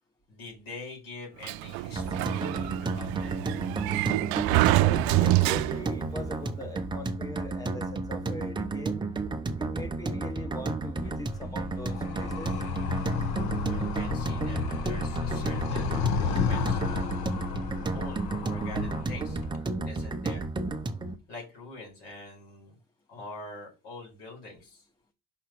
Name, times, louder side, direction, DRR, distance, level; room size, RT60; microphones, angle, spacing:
voice 1, 0.3-3.4 13.4-17.3 17.9-20.9 21.3-22.7 23.1-24.8, left 2 dB, 90° left, 4.9 m, -45 dB
Sliding door, 1.4-6.1, right 19 dB, 70° right, 0.5 m, -26 dB
sound 1, 2.0-21.2, right 3 dB, 10° right, 0.6 m, -32 dB
voice 2, 4.8-9.0 9.6-12.5, equal, 10° left, 1.0 m, -41 dB
Animal, 11.0-19.6, left 6 dB, 65° left, 1.1 m, -32 dB
5.9 x 4.0 x 6.0 m
cardioid pair, 140°, 38 cm